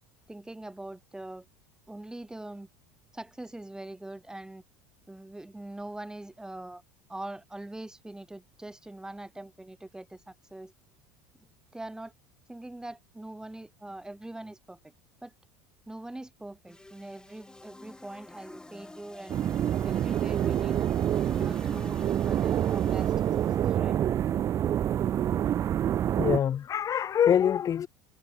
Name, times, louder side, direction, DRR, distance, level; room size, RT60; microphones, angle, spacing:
voice 1, 0.3-1.4 1.9-2.7 3.1-4.6 5.1-6.8 7.1-10.7 11.7-12.1 12.5-14.8 15.2-15.3 15.9-19.4 19.8-20.9 21.4-23.1 23.6-24.0, right 1 dB, 10° right, 4.4 m, -42 dB
sound 1, 16.7-23.8, left 2 dB, 10° left, 6.0 m, -50 dB
sound 2, 19.3-26.4, right 10 dB, 35° right, 0.4 m, -27 dB
voice 2, 26.1-27.9, left 9 dB, 40° left, 3.8 m, -25 dB
supercardioid pair, 90°, 9 cm